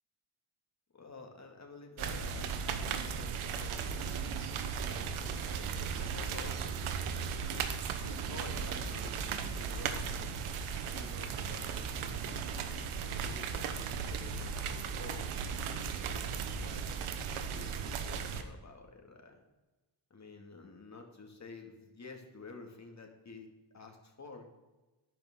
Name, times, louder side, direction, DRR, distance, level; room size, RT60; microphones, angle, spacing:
voice 1, 0.9-4.0 4.7-7.7 8.0-10.4 10.9-15.3 15.8-17.1 17.4-19.4 20.1-23.5 23.7-24.4, left 3 dB, 35° left, 3 dB, 2.4 m, -50 dB
sound 1, 2.0-18.4, right 6 dB, 85° right, 1.2 m, -36 dB
13.0 x 10.5 x 3.8 m, 1.1 s
cardioid pair, 80°, 48 cm